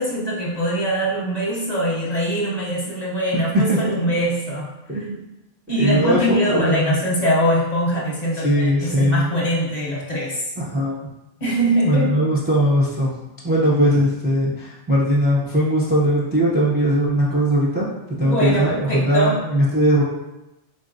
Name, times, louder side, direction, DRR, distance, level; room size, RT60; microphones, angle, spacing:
voice 1, 0.0-4.7 5.7-10.5 11.4-12.1 18.2-19.4, equal, 40° left, -6 dB, 0.8 m, -22 dB
voice 2, 3.7-4.1 4.9-5.2 5.7-6.9 8.3-9.3 10.6-11.0 11.8-13.1 13.4-20.0, equal, 10° right, -6 dB, 0.5 m, -20 dB
3.9 x 3.6 x 2.6 m, 0.97 s
omnidirectional pair, 1.2 m